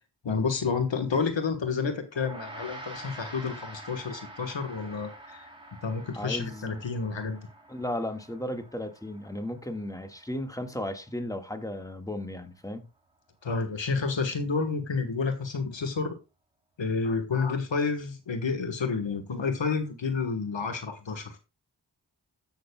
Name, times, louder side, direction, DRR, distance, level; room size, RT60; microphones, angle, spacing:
voice 1, 0.2-5.5 5.8-7.4 13.4-16.2 16.8-21.4, left 4 dB, 80° left, 1.4 m, -30 dB
Gong, 2.1-11.7, right 2 dB, 10° right, 3.5 m, -47 dB
voice 2, 6.1-6.8 7.7-12.8, left 1 dB, 10° left, 1.6 m, -35 dB
15.5 x 6.4 x 2.3 m
cardioid pair, 40°, 44 cm